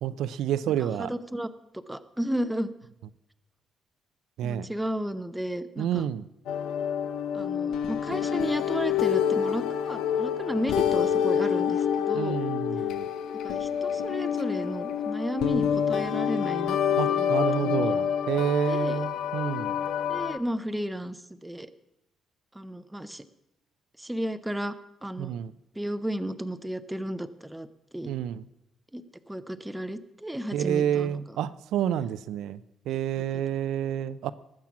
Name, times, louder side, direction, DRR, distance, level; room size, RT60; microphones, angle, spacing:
voice 1, 0.0-1.1 4.4-4.7 5.8-6.3 12.1-13.0 17.0-19.8 25.2-25.5 28.1-28.4 30.5-32.6 32.9-34.3, right 10 dB, 90° right, 14 dB, 0.5 m, -29 dB
voice 2, 0.8-1.5 1.7-2.7 4.4-6.1 7.3-12.4 13.4-16.8 17.1-18.0 18.7-19.0 20.1-21.7 22.5-23.2 24.0-24.7 25.0-25.3 25.8-27.7 27.9-28.1 28.9-31.4 33.3-33.4, equal, 5° right, 11 dB, 0.5 m, -33 dB
sound 1, 6.5-20.4, left 8 dB, 85° left, 0.8 m, -27 dB
19.5 x 7.5 x 5.9 m, 0.87 s
cardioid pair, 170°, 0 cm